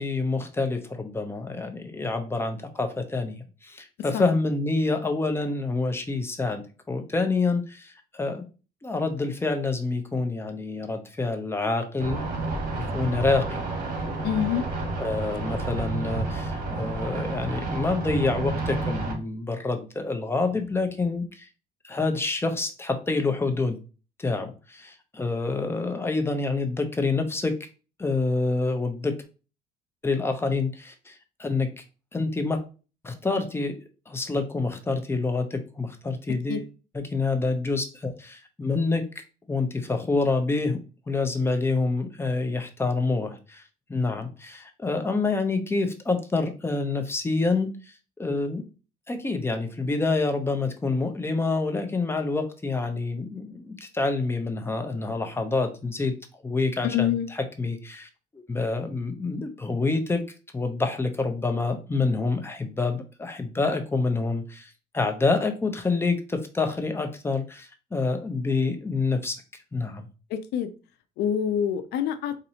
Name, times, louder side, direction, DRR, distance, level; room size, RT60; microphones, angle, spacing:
voice 1, 0.0-8.4 8.8-12.2 12.7-13.6 15.0-21.5 21.8-23.8 24.2-27.6 28.0-29.2 30.0-31.7 32.1-32.6 33.0-33.8 34.1-36.7 36.9-39.1 39.5-40.8 41.1-43.6 43.9-47.7 48.2-48.6 49.1-56.1 56.4-60.2 60.5-69.4 69.7-70.1, left 3 dB, 15° left, 0.6 m, -27 dB
sound 1, 12.0-19.1, right 3 dB, 60° right, 1.4 m, -30 dB
voice 2, 14.2-14.6 36.5-36.6 56.9-57.3 70.3-70.7 71.2-72.4, left 9 dB, 80° left, 0.5 m, -26 dB
4.1 x 2.6 x 2.8 m
cardioid pair, 110°, 17 cm